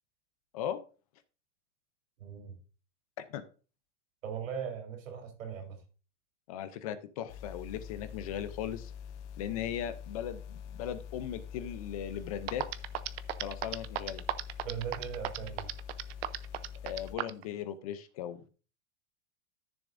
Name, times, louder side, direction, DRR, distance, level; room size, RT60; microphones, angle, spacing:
voice 1, 2.2-2.6 4.2-5.8 14.6-15.7, right 7 dB, 85° right, 3.5 m, -39 dB
voice 2, 6.5-8.9 9.4-12.6 13.4-14.2 16.8-18.5, left 10 dB, 30° left, 0.5 m, -38 dB
sound 1, 7.3-17.2, left 7 dB, 65° left, 1.0 m, -45 dB
sound 2, 12.1-12.2 12.5-17.4, right 13 dB, 55° right, 0.7 m, -34 dB
13.5 x 7.0 x 2.6 m
supercardioid pair, 175°, 38 cm